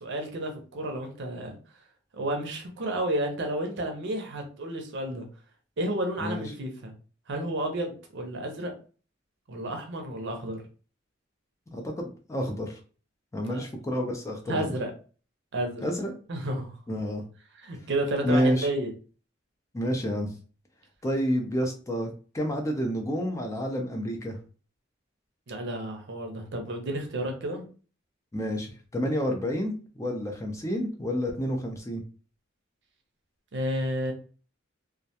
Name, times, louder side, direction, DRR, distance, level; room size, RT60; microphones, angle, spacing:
voice 1, 0.0-1.6 2.1-5.3 5.8-6.9 7.3-8.7 9.5-10.6 13.4-13.6 14.5-14.9 15.5-15.8 16.3-16.7 17.6-18.9 25.5-27.6 33.5-34.1, right 1 dB, 60° right, 3 dB, 0.6 m, -31 dB
voice 2, 11.7-12.8 13.3-14.8 15.8-16.2 16.9-17.2 18.2-18.7 19.7-20.3 21.0-22.1 22.3-24.4 28.3-28.7 28.9-32.0, equal, 15° left, 2 dB, 0.4 m, -29 dB
2.3 x 2.1 x 2.7 m, 0.38 s
head